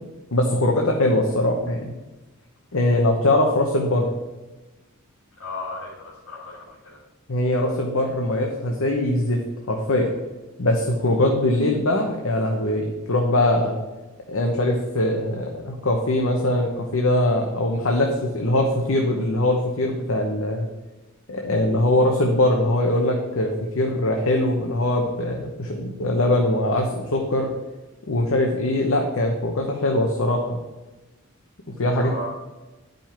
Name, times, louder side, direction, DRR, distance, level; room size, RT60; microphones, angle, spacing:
voice 1, 0.3-2.0 2.7-4.1 7.3-9.4 9.7-10.1 10.6-13.8 14.3-20.7 21.3-27.5 28.1-30.6 31.8-32.3, left 1 dB, 70° left, 1 dB, 0.9 m, -22 dB
voice 2, 5.4-7.0 31.9-32.3, left 2 dB, 90° left, -7 dB, 2.3 m, -35 dB
10.5 x 5.3 x 4.5 m, 1.1 s
head